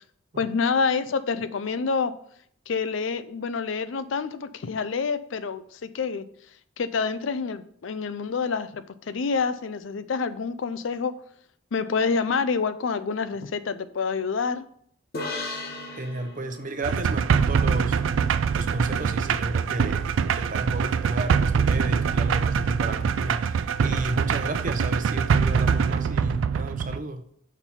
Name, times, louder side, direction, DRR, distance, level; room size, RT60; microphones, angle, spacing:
voice 1, 0.4-2.1 2.7-6.2 6.8-11.1 11.7-14.6, left 5 dB, 80° left, 13 dB, 0.5 m, -27 dB
sound 1, 15.1-18.6, left 2 dB, 55° left, 1.1 m, -38 dB
voice 2, 15.9-18.0 18.6-27.2, right 2 dB, 45° right, 8 dB, 0.7 m, -32 dB
sound 2, 16.8-27.0, right 6 dB, 85° right, 0.3 m, -24 dB
5.9 x 4.5 x 5.5 m, 0.64 s
head